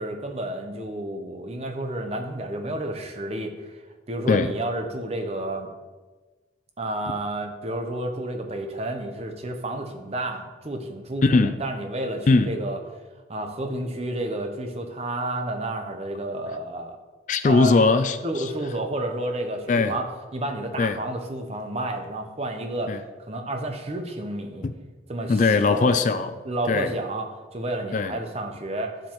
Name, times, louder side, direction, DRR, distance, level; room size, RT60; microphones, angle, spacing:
voice 1, 0.0-5.7 6.8-12.8 13.3-17.0 17.4-17.8 18.2-20.0 20.3-24.7 25.1-25.4 25.7-25.9 26.4-29.0, right 1 dB, 30° right, 5 dB, 0.8 m, -31 dB
voice 2, 11.2-11.6 12.3-12.5 17.3-18.5 19.7-20.0 20.8-21.0 22.9-23.0 24.6-24.7 25.3-26.4 26.7-26.9 27.9-28.1, left 3 dB, 40° left, 10 dB, 0.3 m, -20 dB
9.3 x 7.3 x 3.0 m, 1.3 s
head